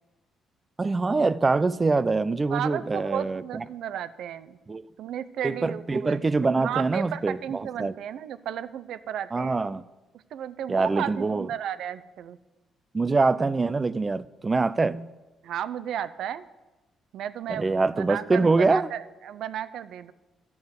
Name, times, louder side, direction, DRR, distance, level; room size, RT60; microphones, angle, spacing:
voice 1, 0.8-3.4 4.7-4.8 5.4-7.9 9.3-9.8 10.7-11.5 12.9-15.1 17.5-18.9, right 3 dB, 25° right, 0.4 m, -24 dB
voice 2, 2.5-4.6 5.0-6.2 6.6-9.6 10.1-12.4 15.4-16.4 17.1-20.1, right 10 dB, 75° right, 0.5 m, -34 dB
11.5 x 7.1 x 8.0 m
cardioid pair, 90°, 0 cm